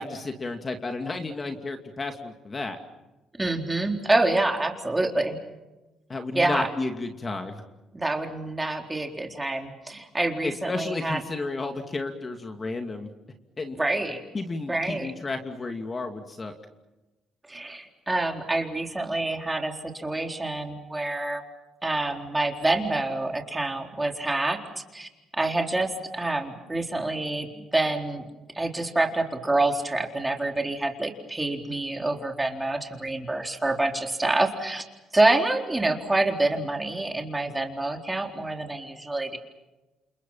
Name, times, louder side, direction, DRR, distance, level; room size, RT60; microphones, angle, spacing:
voice 1, 0.0-2.8 6.1-7.6 10.4-13.1 13.6-13.8 14.3-16.5, left 3 dB, 30° left, 5 dB, 2.6 m, -32 dB
voice 2, 3.4-5.4 6.3-6.7 7.9-11.2 13.7-14.2 14.7-15.1 17.5-21.4 21.8-28.2 28.5-34.8 35.1-39.4, right 2 dB, 15° right, 3 dB, 4.0 m, -27 dB
29.5 x 28.0 x 5.8 m, 1.1 s
cardioid pair, 95°, 0 cm